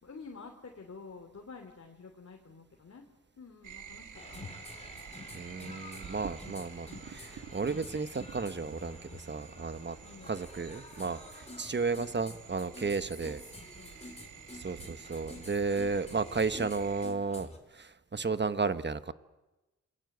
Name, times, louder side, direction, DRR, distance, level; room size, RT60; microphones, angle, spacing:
voice 1, 0.0-3.1 3.4-4.5 10.0-10.4 13.7-14.1, left 4 dB, 50° left, 2 dB, 3.2 m, -49 dB
sound 1, 3.6-17.1, right 7 dB, 70° right, 1.7 m, -49 dB
sound 2, 4.1-17.6, left 2 dB, 20° left, 4.5 m, -49 dB
voice 2, 5.3-10.0 10.3-13.4 14.5-19.1, right 4 dB, 35° right, 12 dB, 1.2 m, -33 dB
27.0 x 21.5 x 8.1 m, 1.1 s
cardioid pair, 70°, 31 cm